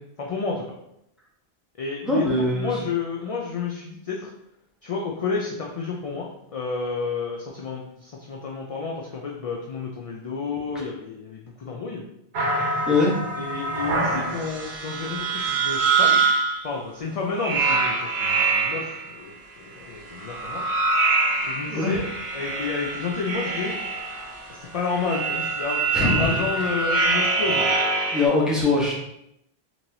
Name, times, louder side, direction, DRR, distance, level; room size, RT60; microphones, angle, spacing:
voice 1, 0.2-0.7 1.8-4.3 4.8-12.0 13.4-16.2 16.6-20.6 21.4-23.8 24.5-27.7, left 4 dB, 55° left, -1 dB, 0.4 m, -30 dB
voice 2, 2.0-2.7 12.9-13.2 21.7-22.0 25.9-26.6 28.1-28.9, left 2 dB, ahead, -5 dB, 0.8 m, -22 dB
sound 1, 12.3-16.6 17.3-19.1 20.1-28.3, right 3 dB, 80° right, 1.0 m, -25 dB
3.9 x 3.0 x 2.7 m, 0.80 s
omnidirectional pair, 1.0 m